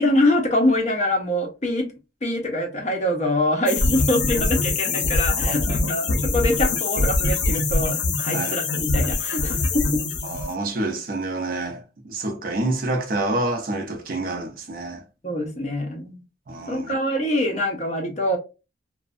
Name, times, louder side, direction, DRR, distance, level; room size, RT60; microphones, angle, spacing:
voice 1, 0.0-1.9 2.2-10.0 15.2-16.2 16.7-18.4, left 1 dB, 40° left, 0.6 m, -24 dB
sound 1, 3.7-10.5, left 3 dB, 85° left, 0.5 m, -23 dB
voice 2, 10.2-15.0 16.5-16.9, right 2 dB, 50° right, 0.5 m, -27 dB
2.5 x 2.1 x 2.3 m
head